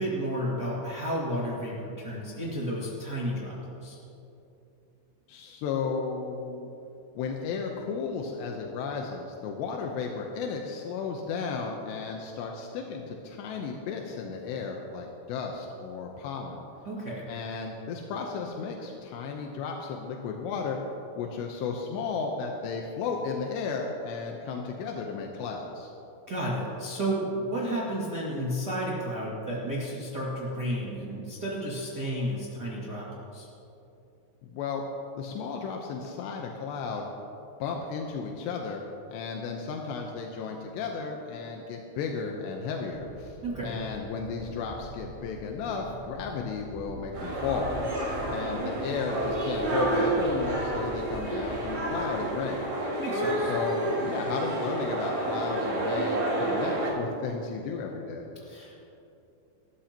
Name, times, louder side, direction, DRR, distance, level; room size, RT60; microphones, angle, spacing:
voice 1, 0.0-3.9 16.8-17.3 26.3-33.5 43.4-43.8 53.0-53.5 58.4-58.8, right 1 dB, 90° right, -7 dB, 0.9 m, -32 dB
voice 2, 5.3-6.7 7.2-16.6 17.3-20.8 21.2-25.9 34.4-34.8 35.2-37.1 37.6-38.8 39.1-47.7 48.3-52.6 53.5-58.2, left 5 dB, 80° left, 1 dB, 2.6 m, -34 dB
sound 1, 42.9-52.5, right 1 dB, 15° left, 2.4 m, -44 dB
sound 2, 47.1-56.9, right 1 dB, 40° right, 4.6 m, -29 dB
25.0 x 13.0 x 2.9 m, 2.8 s
omnidirectional pair, 5.9 m